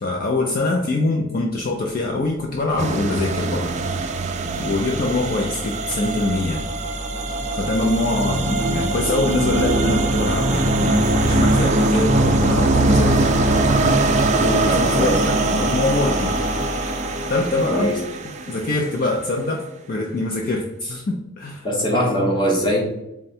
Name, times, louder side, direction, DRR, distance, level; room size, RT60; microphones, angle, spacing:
voice 1, 0.0-3.7 4.6-6.6 7.5-13.4 14.3-15.1 15.5-16.4 17.3-18.0 18.5-21.7, left 2 dB, 45° left, 0 dB, 0.4 m, -23 dB
sound 1, 2.4-18.2, equal, 75° left, 1.4 m, -29 dB
sound 2, 2.8-18.9, right 2 dB, 35° right, 0.3 m, -22 dB
voice 2, 14.7-15.5 17.7-18.0 21.6-22.8, equal, 20° left, -2 dB, 0.8 m, -22 dB
3.6 x 2.2 x 4.1 m, 0.90 s
head